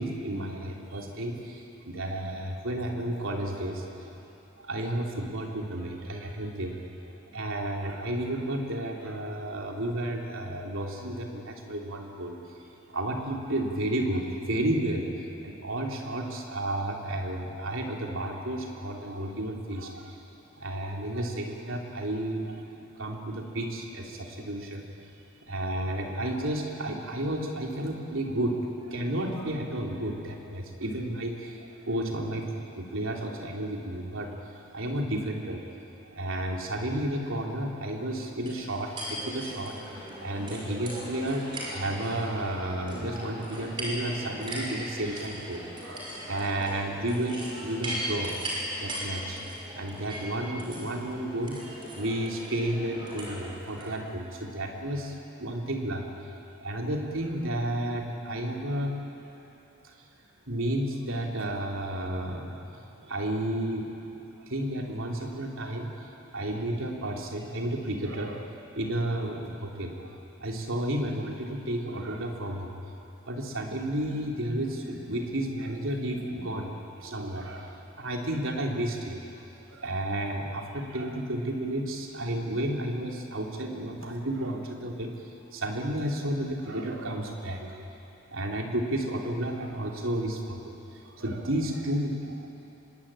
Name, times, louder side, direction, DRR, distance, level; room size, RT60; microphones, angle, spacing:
voice 1, 0.0-4.1 4.6-6.8 7.3-20.2 20.6-22.6 22.9-24.8 25.5-35.7 36.0-48.3 48.7-49.4 49.8-56.1 56.5-59.0 60.5-63.9 64.4-70.1 70.4-72.7 73.3-76.7 77.0-79.3 79.7-85.1 85.5-87.9 88.3-90.6 91.0-92.5, right 1 dB, 75° right, 0 dB, 3.1 m, -32 dB
sound 1, 38.5-53.9, equal, 25° right, 5.7 m, -38 dB
25.0 x 21.5 x 8.8 m, 3.0 s
head